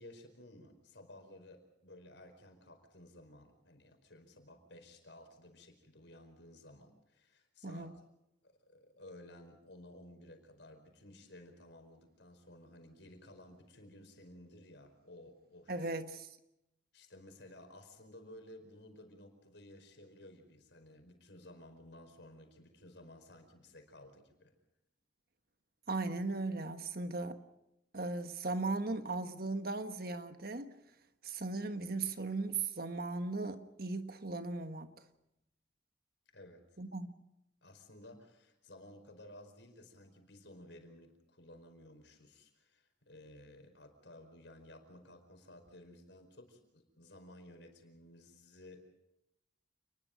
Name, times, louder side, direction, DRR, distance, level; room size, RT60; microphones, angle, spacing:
voice 1, 0.0-7.9 8.4-15.9 16.9-24.5 36.3-36.7 37.6-49.0, left 1 dB, 75° left, 4.9 m, -55 dB
voice 2, 7.6-8.0 15.7-16.3 25.9-27.4 27.9-30.7 31.2-34.9 36.8-37.1, right 3 dB, 55° right, 1.5 m, -37 dB
29.0 x 21.0 x 5.2 m
head